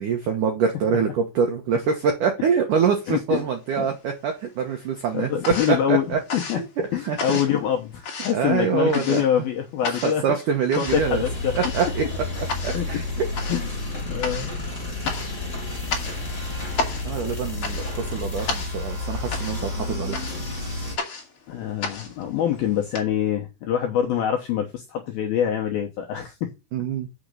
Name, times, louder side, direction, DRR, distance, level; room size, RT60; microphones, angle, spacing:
voice 1, 0.0-5.3 5.7-6.2 6.5-6.7 7.0-7.4 8.3-9.2 9.9-11.2 11.5-12.0 12.6-13.0 17.0-20.2 26.7-27.1, right 6 dB, 85° right, 1.8 m, -25 dB
voice 2, 3.1-3.5 3.8-3.9 5.1-6.1 6.3-6.6 6.9-10.2 10.8-11.5 12.7-12.9 13.5-14.6 15.1-15.3 21.5-26.5, left 9 dB, 80° left, 2.2 m, -25 dB
sound 1, 3.6-4.4 4.7-23.0, left 4 dB, 45° left, 1.8 m, -34 dB
sound 2, 10.9-21.0, left 2 dB, 15° left, 3.2 m, -30 dB
7.3 x 6.2 x 6.7 m
omnidirectional pair, 5.8 m